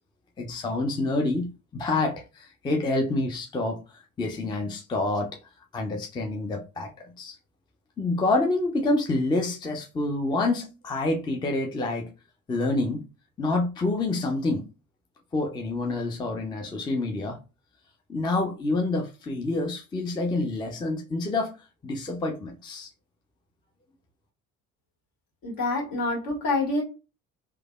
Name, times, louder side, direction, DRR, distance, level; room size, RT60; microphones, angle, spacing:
voice 1, 0.4-5.3 5.7-6.9 7.2-7.4 8.0-12.1 12.5-13.0 13.4-14.7 15.3-17.4 18.1-21.5 21.8-22.9, left 2 dB, 10° left, 0.4 m, -27 dB
voice 2, 25.4-26.8, left 2 dB, 55° left, 1.5 m, -26 dB
3.2 x 2.1 x 2.2 m
hypercardioid pair, 55°, 42 cm